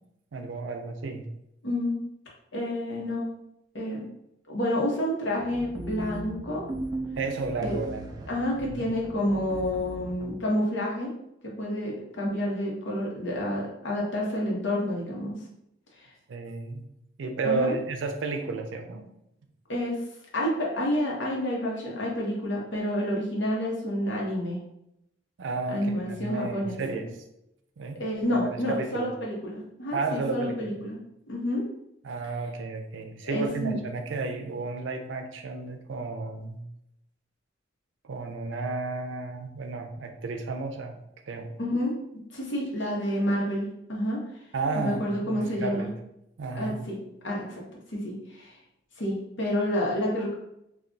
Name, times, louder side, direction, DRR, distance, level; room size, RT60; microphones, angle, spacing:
voice 1, 0.3-1.3 7.2-8.3 8.8-8.9 16.3-16.8 17.2-19.0 25.4-27.1 27.8-28.0 28.3-29.1 29.9-30.6 32.0-36.6 38.0-40.9 41.3-41.5 44.5-45.9 46.4-46.8, right 3 dB, 85° right, 5 dB, 0.5 m, -32 dB
voice 2, 1.6-2.0 2.5-3.3 3.7-4.0 4.5-6.6 7.6-7.7 8.3-11.1 11.4-15.4 16.0-16.1 17.4-17.8 18.4-18.5 19.7-20.0 20.3-24.6 25.7-26.8 28.0-31.0 31.3-31.6 33.2-33.8 41.6-42.0 42.3-44.2 44.7-45.9 46.5-48.6 49.0-50.4, left 1 dB, 75° left, -3 dB, 0.9 m, -29 dB
sound 1, 5.4-10.4, right 1 dB, 20° right, 0.3 m, -38 dB
2.3 x 2.3 x 3.8 m, 0.81 s
head